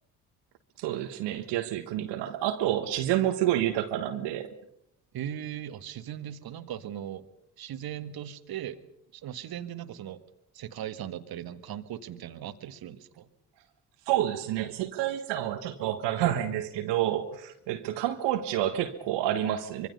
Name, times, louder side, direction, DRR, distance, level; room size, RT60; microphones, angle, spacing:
voice 1, 0.8-4.5 14.1-19.9, right 12 dB, 70° right, 6 dB, 1.5 m, -29 dB
voice 2, 5.1-7.2 7.6-8.8 9.1-10.2 10.5-13.3, right 10 dB, 55° right, 10 dB, 1.7 m, -38 dB
25.0 x 23.5 x 5.5 m, 0.74 s
hypercardioid pair, 50°, 44 cm